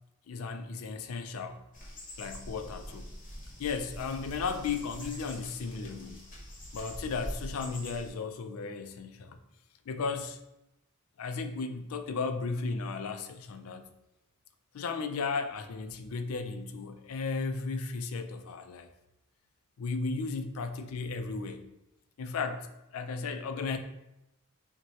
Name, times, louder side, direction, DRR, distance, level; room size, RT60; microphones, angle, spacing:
voice 1, 0.3-1.6 2.2-3.1 3.6-6.2 6.7-9.4 9.9-10.4 11.2-13.9 14.7-18.9 19.8-21.7 22.2-22.7 22.9-23.8, left 4 dB, 70° left, 8 dB, 0.4 m, -35 dB
sound 1, 1.7-8.1, equal, 35° left, 1.0 m, -44 dB
5.8 x 2.2 x 2.8 m, 0.89 s
head